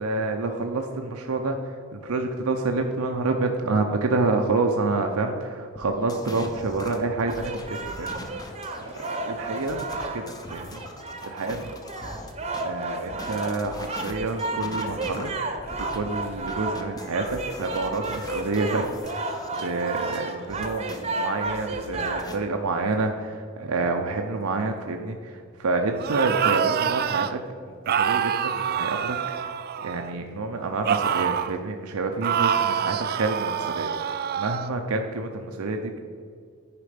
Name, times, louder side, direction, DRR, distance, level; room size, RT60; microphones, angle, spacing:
voice 1, 0.0-1.6 1.9-8.2 8.9-10.8 11.2-11.7 12.6-15.3 15.9-18.8 19.1-19.2 19.5-27.4 27.8-36.0, right 3 dB, 85° right, 4 dB, 0.6 m, -28 dB
sound 1, 5.8-12.6 13.1-21.0 21.5-22.4, left 1 dB, 20° left, 0.7 m, -41 dB
sound 2, 7.3-22.4, right 2 dB, 30° right, 0.8 m, -33 dB
sound 3, 26.0-27.3 27.9-30.1 30.8-31.6 32.2-34.7, right 8 dB, 45° right, 0.4 m, -26 dB
9.8 x 5.1 x 5.1 m, 2.2 s
head